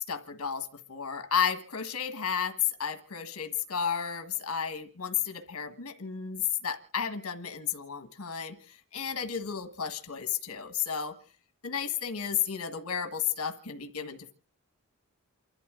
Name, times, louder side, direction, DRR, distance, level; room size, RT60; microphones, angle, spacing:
voice 1, 0.1-11.1 11.6-14.3, left 8 dB, 75° left, 7 dB, 1.5 m, -32 dB
29.0 x 12.0 x 3.7 m, 0.39 s
head